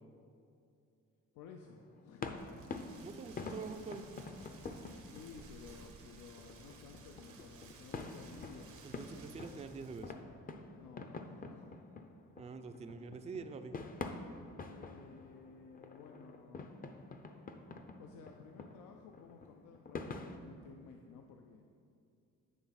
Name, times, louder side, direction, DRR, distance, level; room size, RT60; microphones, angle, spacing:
voice 1, 1.3-2.3 5.0-8.7 10.7-11.7 14.6-16.7 18.0-21.6, left 5 dB, 80° left, 3 dB, 0.5 m, -55 dB
sound 1, 1.6-20.4, left 3 dB, 30° left, 0.5 m, -47 dB
Rain, 2.4-10.1, right 4 dB, 80° right, 1.0 m, -57 dB
voice 2, 3.0-4.0 8.8-10.1 12.4-13.8, right 4 dB, 20° right, 8 dB, 0.4 m, -45 dB
9.2 x 3.4 x 5.7 m, 2.5 s
cardioid pair, 90°, 30 cm